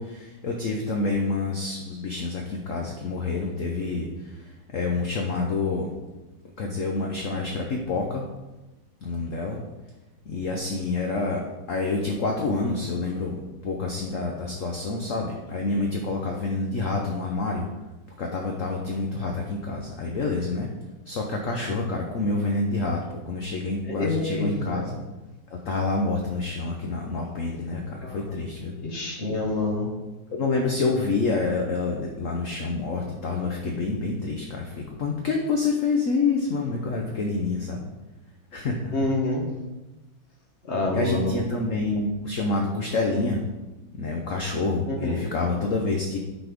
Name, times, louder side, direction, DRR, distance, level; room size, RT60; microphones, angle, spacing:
voice 1, 0.0-4.1 4.7-5.9 6.6-8.2 9.0-9.6 10.3-11.4 11.7-13.4 13.6-17.7 18.2-20.7 21.1-25.0 25.5-28.7 30.3-37.9 38.5-39.1 40.9-43.4 43.9-46.2, left 3 dB, 55° left, 1 dB, 0.9 m, -27 dB
voice 2, 23.9-24.8 28.0-28.2 28.8-29.9 38.9-39.5 40.7-41.4 44.9-45.3, left 2 dB, 35° left, 0 dB, 1.5 m, -27 dB
9.1 x 4.3 x 5.2 m, 1.1 s
omnidirectional pair, 2.2 m